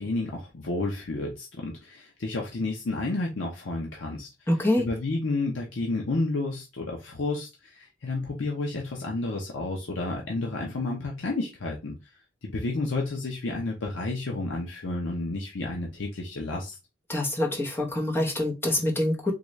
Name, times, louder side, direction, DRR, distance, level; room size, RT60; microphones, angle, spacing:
voice 1, 0.0-4.3 4.8-12.0 12.4-16.8, left 2 dB, 80° left, 0.7 m, -31 dB
voice 2, 4.5-4.9 17.1-19.3, left 1 dB, 10° left, 0.8 m, -25 dB
3.9 x 2.4 x 3.1 m
head